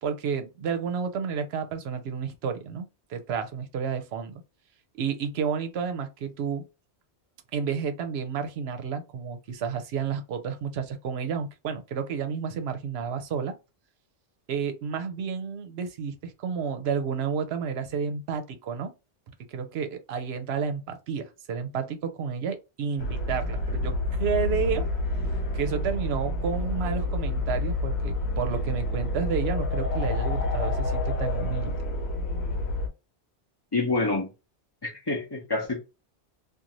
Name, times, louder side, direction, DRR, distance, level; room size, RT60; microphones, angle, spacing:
voice 1, 0.0-4.4 5.0-6.7 7.5-13.5 14.5-18.9 19.5-24.8 25.5-31.8, right 6 dB, 70° right, 0.8 m, -31 dB
sound 1, 23.0-32.9, left 2 dB, 70° left, 1.0 m, -28 dB
voice 2, 33.7-34.3 34.8-35.8, left 3 dB, 25° left, 0.7 m, -27 dB
2.5 x 2.4 x 3.0 m
omnidirectional pair, 1.1 m